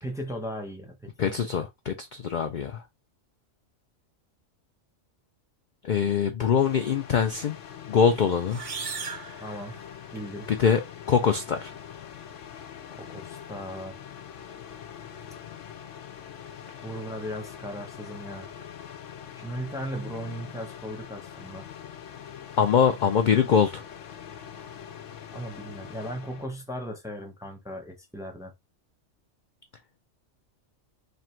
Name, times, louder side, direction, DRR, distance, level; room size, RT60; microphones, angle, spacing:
voice 1, 0.0-1.4 9.4-9.8 10.1-10.5 12.9-14.0 16.8-18.5 19.4-21.7 25.3-28.5, equal, 5° right, 0.7 m, -37 dB
voice 2, 1.2-2.8 5.8-7.6 7.9-8.6 10.5-11.7 22.6-23.8, left 7 dB, 60° left, 0.5 m, -23 dB
sound 1, 6.6-26.5, left 8 dB, 80° left, 1.0 m, -43 dB
sound 2, 8.4-10.3, right 5 dB, 50° right, 0.4 m, -38 dB
3.4 x 2.5 x 4.3 m
omnidirectional pair, 1.3 m